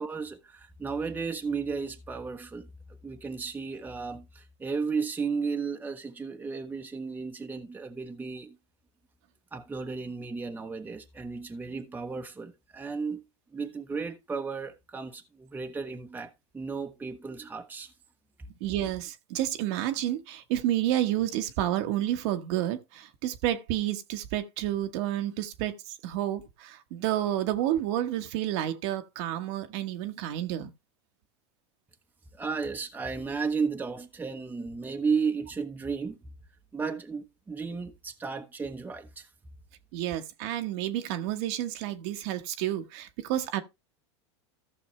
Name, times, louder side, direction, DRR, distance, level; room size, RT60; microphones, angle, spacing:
voice 1, 0.0-2.7 3.0-8.6 9.5-13.2 13.5-17.9 32.4-36.2 36.7-39.3, right 5 dB, 10° right, 1.0 m, -34 dB
voice 2, 18.6-25.7 26.0-30.7 39.9-43.6, right 12 dB, 65° right, 1.2 m, -30 dB
14.5 x 6.2 x 3.2 m
hypercardioid pair, 105°, 15 cm